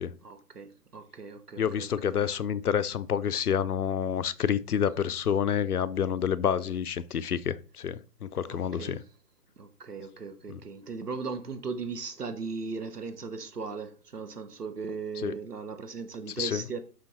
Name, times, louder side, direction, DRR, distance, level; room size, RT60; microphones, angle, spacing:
voice 1, 0.2-2.1 8.5-9.0 9.6-16.8, right 4 dB, 80° right, 1.5 m, -38 dB
voice 2, 1.6-7.6 7.8-9.0 10.5-10.6 15.2-15.3 16.4-16.6, left 8 dB, 75° left, 0.7 m, -28 dB
6.4 x 5.7 x 4.1 m
figure-of-eight pair, 135°, 46 cm